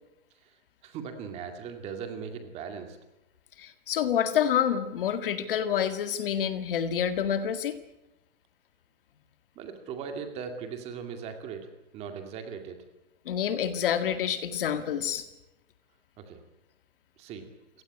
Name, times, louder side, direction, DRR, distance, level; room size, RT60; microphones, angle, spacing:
voice 1, 0.8-3.0 9.6-12.8 16.2-16.4 17.2-17.5, right 6 dB, 15° right, 6 dB, 2.2 m, -39 dB
voice 2, 3.6-7.8 13.3-15.3, left 9 dB, 45° left, 10 dB, 1.9 m, -28 dB
29.0 x 17.5 x 9.8 m, 0.95 s
hypercardioid pair, 175°, 38 cm